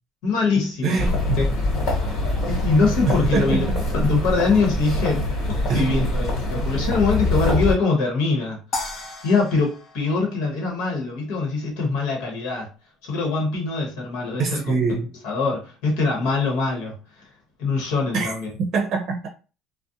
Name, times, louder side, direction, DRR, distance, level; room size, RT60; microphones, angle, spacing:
voice 1, 0.2-1.0 1.4-2.0 2.5-3.6 4.0-8.6 9.2-12.7 13.0-14.6 15.2-17.0 17.6-18.5, left 4 dB, 85° left, 0.9 m, -23 dB
voice 2, 0.8-1.5 3.1-3.8 5.7-6.1 14.4-15.1 18.1-18.3 18.6-19.3, right 4 dB, 55° right, 0.6 m, -24 dB
sound 1, 1.0-7.7, left 1 dB, 55° left, 1.2 m, -24 dB
sound 2, 8.7-11.1, left 2 dB, 40° left, 0.6 m, -35 dB
2.5 x 2.0 x 2.6 m
cardioid pair, 125°, 0 cm